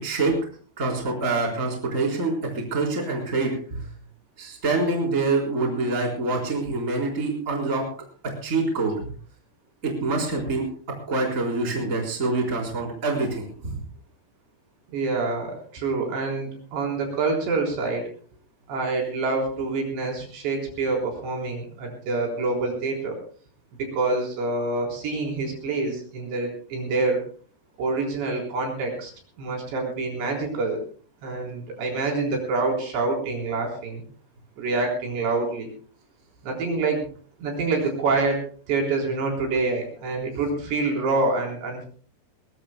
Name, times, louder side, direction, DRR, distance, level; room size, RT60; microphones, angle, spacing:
voice 1, 0.0-0.3 0.8-3.8 4.4-7.8 8.4-9.0 9.8-10.6 11.1-13.8, right 3 dB, 20° right, 0 dB, 3.8 m, -25 dB
voice 2, 14.9-18.0 18.7-23.2 23.8-27.2 27.8-29.1 29.4-30.8 31.2-34.0 34.6-35.7 36.4-37.1 37.4-38.4 38.7-41.9, right 3 dB, 65° right, 0 dB, 6.1 m, -26 dB
21.0 x 21.0 x 2.2 m, 0.43 s
omnidirectional pair, 5.4 m